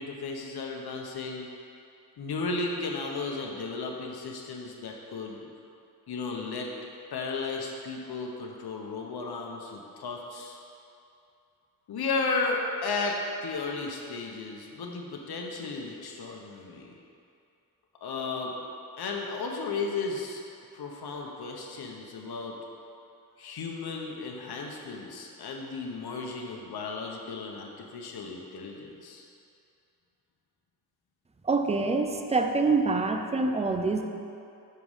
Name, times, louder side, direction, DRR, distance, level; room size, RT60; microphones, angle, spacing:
voice 1, 0.0-1.5 2.2-5.5 6.1-6.7 7.1-10.6 11.9-16.9 18.0-18.5 19.0-20.4 20.7-22.5 23.4-29.2, left 3 dB, 80° left, 0 dB, 0.9 m, -34 dB
voice 2, 31.4-34.1, right 3 dB, 15° right, 5 dB, 0.5 m, -26 dB
6.7 x 5.0 x 5.5 m, 2.6 s
wide cardioid pair, 115°, 38 cm